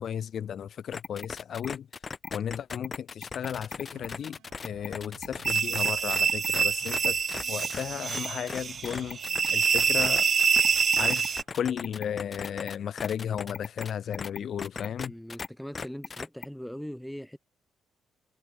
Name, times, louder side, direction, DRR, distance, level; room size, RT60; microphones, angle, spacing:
voice 1, 0.0-1.9 2.3-7.2 7.5-9.2 9.5-15.1, left 9 dB, 60° left, 0.5 m, -34 dB
sound 1, 0.9-15.5 15.8-16.5, left 5 dB, 35° left, 0.8 m, -38 dB
sound 2, 3.5-11.7, right 16 dB, 90° right, 5.2 m, -56 dB
sound 3, 5.4-11.4, right 6 dB, 45° right, 0.9 m, -26 dB
voice 2, 15.0-17.4, equal, ahead, 3.4 m, -40 dB
cardioid pair, 90°, 0 cm